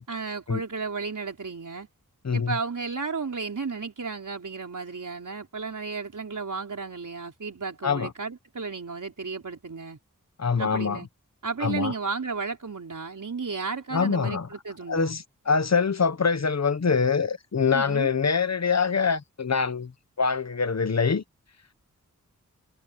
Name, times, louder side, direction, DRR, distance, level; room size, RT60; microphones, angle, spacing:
voice 1, 0.0-1.9 2.3-10.0 10.6-11.1 11.4-15.2 17.7-18.1, right 4 dB, 65° right, 4.6 m, -33 dB
voice 2, 2.2-2.6 7.8-8.1 10.4-11.0 11.6-11.9 13.9-14.5 14.9-19.9 20.2-21.2, left 5 dB, 55° left, 1.1 m, -24 dB
wide cardioid pair, 90°, 33 cm